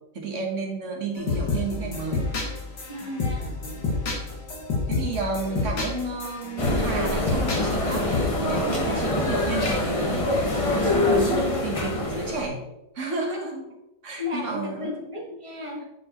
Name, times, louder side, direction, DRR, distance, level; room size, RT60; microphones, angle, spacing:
voice 1, 0.1-2.3 4.9-12.7 12.9-13.6 14.0-14.9, right 3 dB, 45° right, 1 dB, 1.3 m, -31 dB
sound 1, 1.2-8.2, left 3 dB, 80° left, 2.2 m, -29 dB
voice 2, 2.9-3.6 8.4-9.1 13.5-13.6 14.2-15.8, left 2 dB, 20° right, -2 dB, 1.3 m, -35 dB
sound 2, 6.6-12.5, left 2 dB, 40° left, 0.5 m, -25 dB
8.8 x 4.5 x 3.0 m, 0.91 s
omnidirectional pair, 1.9 m